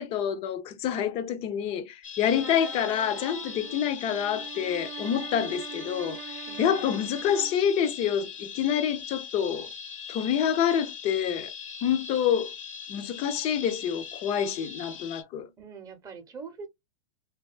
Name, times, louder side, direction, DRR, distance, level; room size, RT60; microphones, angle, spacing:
voice 1, 0.0-6.2 6.6-9.7 10.1-11.5 11.8-12.5 12.9-15.5, left 9 dB, 35° left, 0.5 m, -27 dB
sound 1, 2.0-15.2, left 7 dB, 70° left, 0.8 m, -40 dB
sound 2, 2.3-7.7, right 11 dB, 60° right, 0.6 m, -43 dB
voice 2, 6.5-6.9 15.6-16.7, right 5 dB, 20° right, 0.7 m, -43 dB
2.6 x 2.2 x 2.3 m
hypercardioid pair, 105°, 17 cm